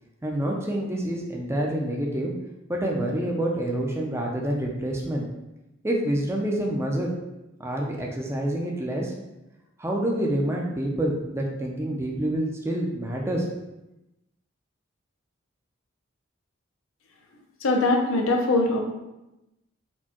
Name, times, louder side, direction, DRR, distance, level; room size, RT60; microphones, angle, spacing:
voice 1, 0.2-2.3 2.7-5.3 5.8-7.1 7.6-9.1 9.8-13.5, right 1 dB, 15° right, -1 dB, 0.4 m, -27 dB
voice 2, 17.6-18.8, left 2 dB, 80° left, 2 dB, 0.6 m, -22 dB
4.2 x 2.2 x 2.9 m, 0.95 s
head